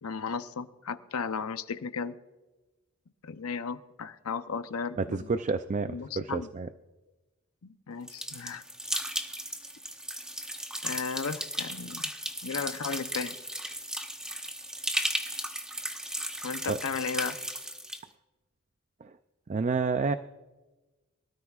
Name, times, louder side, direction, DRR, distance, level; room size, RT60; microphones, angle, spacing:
voice 1, 0.0-2.1 3.2-5.3 5.9-6.5 7.6-8.6 10.8-12.0 12.4-13.3 16.4-17.4, left 5 dB, 90° left, 11 dB, 0.7 m, -35 dB
voice 2, 5.0-6.7 16.7-16.8 19.0-19.1 19.5-20.1, right 4 dB, 35° right, 11 dB, 0.4 m, -29 dB
sound 1, 8.1-18.0, right 1 dB, 5° right, 0.9 m, -35 dB
23.5 x 13.0 x 2.4 m, 1.1 s
head